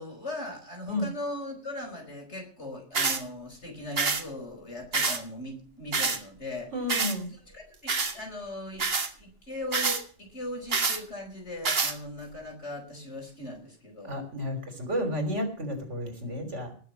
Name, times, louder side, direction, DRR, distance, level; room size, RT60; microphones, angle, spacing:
voice 1, 0.0-6.7 7.3-8.9 9.1-14.1, left 1 dB, 70° left, 2 dB, 5.4 m, -39 dB
sound 1, 2.9-3.2 4.0-4.2 4.9-5.2 5.9-6.2 6.9-7.2 7.9-8.1 8.8-9.1 9.7-10.0 10.7-11.0 11.6-11.9, right 4 dB, 55° right, 1.7 m, -26 dB
voice 2, 6.7-7.3 14.0-16.7, left 1 dB, 85° right, 7 dB, 3.7 m, -31 dB
19.0 x 6.7 x 7.2 m, 0.43 s
omnidirectional pair, 1.2 m